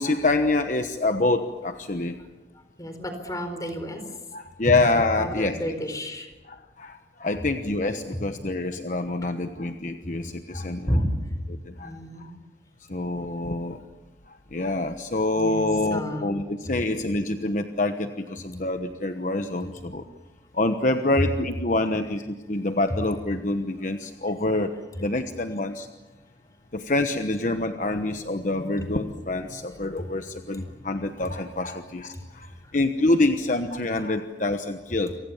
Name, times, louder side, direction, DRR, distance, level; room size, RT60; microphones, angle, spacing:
voice 1, 0.0-2.2 4.3-5.6 6.5-10.9 11.5-12.3 12.9-13.8 14.5-20.0 20.5-24.7 25.0-25.9 26.7-35.1, left 2 dB, 45° left, 7 dB, 1.2 m, -26 dB
voice 2, 2.8-4.0 4.6-4.7 5.2-6.3 8.1-8.2 10.5-11.1 11.8-12.3 13.0-13.1 15.3-16.3 30.6-30.7 32.1-32.2 32.6-32.8, equal, 20° left, 7 dB, 4.3 m, -31 dB
29.0 x 25.0 x 7.3 m, 1.1 s
head